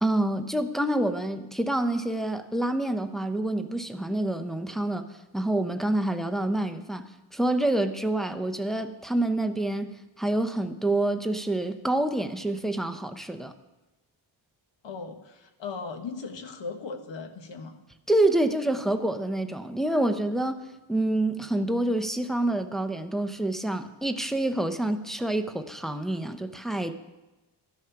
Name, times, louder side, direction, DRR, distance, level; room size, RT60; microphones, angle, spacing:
voice 1, 0.0-5.1 5.3-7.0 7.3-13.5 18.1-26.9, right 1 dB, ahead, 7 dB, 0.6 m, -27 dB
voice 2, 14.8-17.8, left 4 dB, 65° left, 7 dB, 1.4 m, -38 dB
13.5 x 11.0 x 5.8 m, 1.1 s
wide cardioid pair, 165°, 48 cm